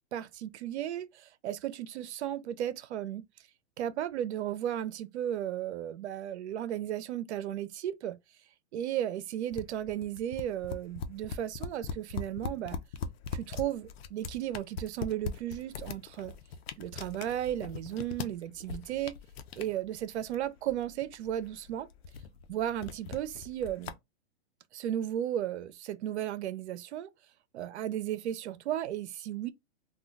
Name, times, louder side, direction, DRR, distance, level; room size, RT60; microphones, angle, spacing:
voice 1, 0.1-3.2 3.8-8.2 8.7-12.8 13.3-16.3 16.8-19.2 19.5-21.9 22.5-24.0 24.7-27.1 27.5-29.5, right 11 dB, 75° right, 0.6 m, -35 dB
sound 1, 9.5-23.9, left 6 dB, 60° left, 0.6 m, -41 dB
2.3 x 2.2 x 3.7 m
hypercardioid pair, 145°, 34 cm